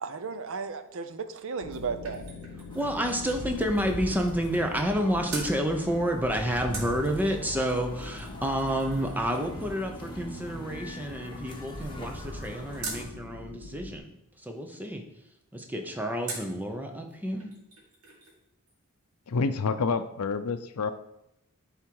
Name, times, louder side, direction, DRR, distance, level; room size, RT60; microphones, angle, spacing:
voice 1, 0.0-2.2, right 5 dB, 60° right, 10 dB, 0.6 m, -34 dB
sound 1, 1.4-5.0 5.3-5.5 6.7-13.1 16.3-16.6 17.1-17.2 17.4-18.4 18.7-18.8, right 3 dB, 75° right, 2.1 m, -44 dB
sound 2, 1.6-14.0, left 3 dB, 50° left, 1.2 m, -43 dB
sound 3, 2.7-13.1, left 1 dB, 20° left, 1.1 m, -42 dB
voice 2, 2.7-14.1 14.4-15.0 15.5-17.5, equal, 10° right, 3 dB, 0.8 m, -29 dB
voice 3, 19.3-20.9, left 4 dB, 80° left, 11 dB, 0.5 m, -28 dB
10.5 x 3.6 x 4.7 m, 0.82 s
head